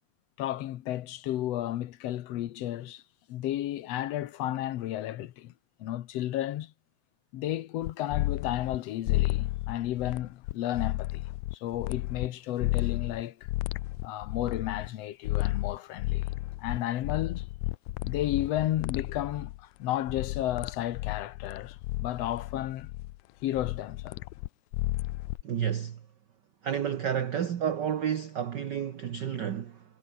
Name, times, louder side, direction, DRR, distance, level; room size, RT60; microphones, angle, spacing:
voice 1, 0.4-3.0 3.3-5.5 5.8-6.7 7.3-13.5 14.0-16.3 16.6-17.5 18.0-22.9 23.4-24.2, left 13 dB, 65° left, 1.9 m, -33 dB
sound 1, 7.8-8.8 9.1-12.3 12.6-14.9 15.2-19.6 20.1-23.2 23.6-25.4, left 19 dB, 85° left, 2.0 m, -32 dB
voice 2, 25.4-26.0 26.6-29.8, right 9 dB, 60° right, 1.1 m, -30 dB
omnidirectional pair, 3.4 m